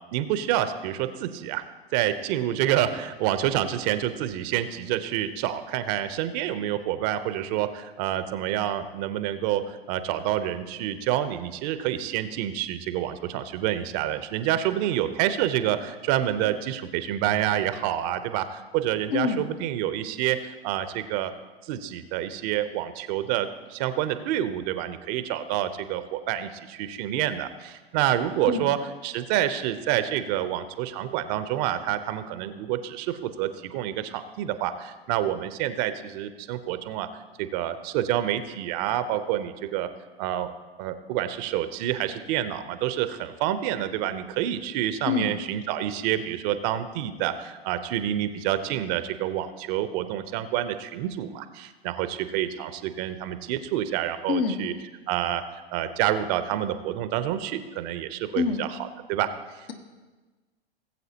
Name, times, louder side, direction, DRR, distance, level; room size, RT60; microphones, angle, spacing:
voice 1, 0.1-1.6 1.9-21.3 21.6-28.8 29.0-37.1 37.4-39.9 40.2-40.5 40.8-54.7 55.1-55.4 55.7-59.7, right 12 dB, 45° right, 11 dB, 0.7 m, -28 dB
voice 2, 19.1-19.5 28.5-28.7 45.1-45.3 54.3-54.6 58.3-58.6, left 5 dB, 70° left, 4 dB, 1.4 m, -25 dB
19.0 x 7.8 x 2.9 m, 1.3 s
hypercardioid pair, 100°, 31 cm